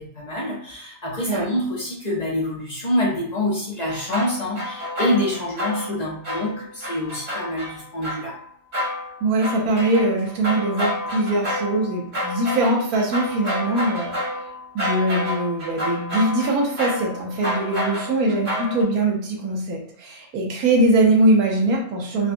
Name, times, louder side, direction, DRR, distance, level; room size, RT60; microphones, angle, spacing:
voice 1, 0.0-8.3, left 1 dB, 45° left, -5 dB, 0.6 m, -26 dB
sound 1, 3.9-6.0 6.2-8.5 8.7-18.8, left 1 dB, 55° right, 1.8 m, -29 dB
voice 2, 9.2-14.4 14.7-22.3, right 2 dB, 80° right, 0 dB, 1.2 m, -22 dB
3.9 x 2.2 x 2.5 m, 0.66 s
omnidirectional pair, 1.6 m